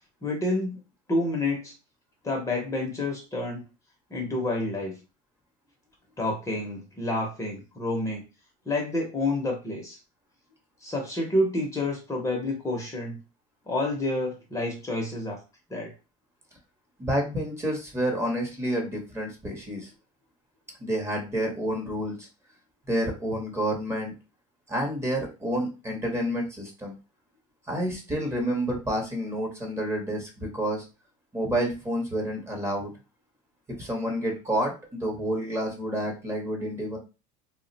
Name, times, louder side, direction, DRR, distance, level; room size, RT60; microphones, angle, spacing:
voice 1, 0.2-0.8 1.1-1.7 2.2-3.6 4.1-5.0 6.2-8.2 8.7-10.0 10.8-13.2 13.7-15.4 15.7-15.9, left 2 dB, 15° left, 0 dB, 0.7 m, -29 dB
voice 2, 17.0-19.9 20.8-22.3 22.9-24.1 24.7-26.9 27.7-30.8 31.3-32.9 33.7-37.0, right 1 dB, 15° right, 1 dB, 0.9 m, -29 dB
2.3 x 2.1 x 3.9 m, 0.30 s
supercardioid pair, 135°, 17 cm